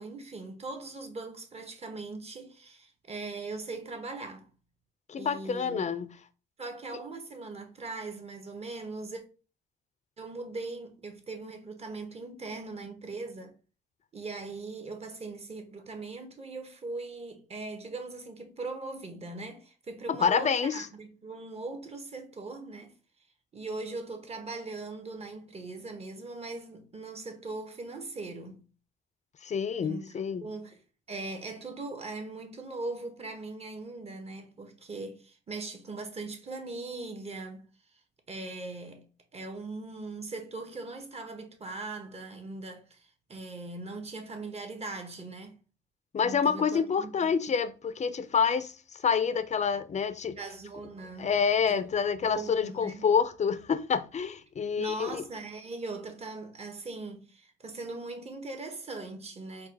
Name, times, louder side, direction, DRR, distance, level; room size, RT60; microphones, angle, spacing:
voice 1, 0.0-4.5 5.2-5.9 6.6-9.2 10.2-13.5 14.1-22.9 23.5-28.6 29.8-30.1 30.4-30.8 31.1-37.7 38.3-39.0 39.3-45.6 46.2-47.3 50.3-51.3 51.7-51.8 52.2-53.1 54.8-59.7, right 3 dB, 30° right, 1.2 m, -40 dB
voice 2, 5.1-6.1 20.1-20.9 29.4-30.5 46.1-50.4 51.2-55.2, left 6 dB, 35° left, 0.5 m, -28 dB
4.5 x 2.3 x 4.7 m
cardioid pair, 90°, 20 cm